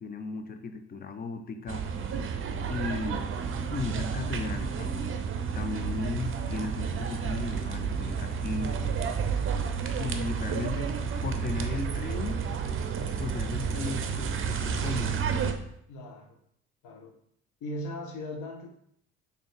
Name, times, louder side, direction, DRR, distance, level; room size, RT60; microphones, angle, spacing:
voice 1, 0.0-1.9 2.7-3.3 3.7-5.3 5.5-9.0 10.0-10.9 11.2-12.4 13.0-15.2, left 4 dB, 25° left, 8 dB, 0.5 m, -36 dB
sound 1, 1.7-15.5, right 6 dB, 40° right, 0.5 m, -31 dB
voice 2, 15.9-16.4 16.8-17.1 17.6-18.7, left 1 dB, 60° left, 4 dB, 0.8 m, -38 dB
3.7 x 2.7 x 3.7 m, 0.69 s
hypercardioid pair, 55°, 34 cm